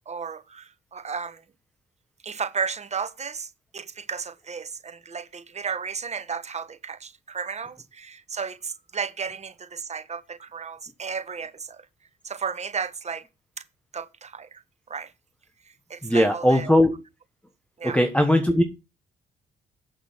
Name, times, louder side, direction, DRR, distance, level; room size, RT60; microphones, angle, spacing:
voice 1, 0.1-1.4 2.2-11.8 12.2-13.2 13.9-14.6 14.9-15.1 15.9-16.7 17.8-18.0, right 6 dB, 35° right, 1.1 m, -33 dB
voice 2, 16.0-16.9 17.8-18.6, left 1 dB, 5° left, 1.2 m, -19 dB
8.1 x 7.7 x 4.6 m
cardioid pair, 90°, 20 cm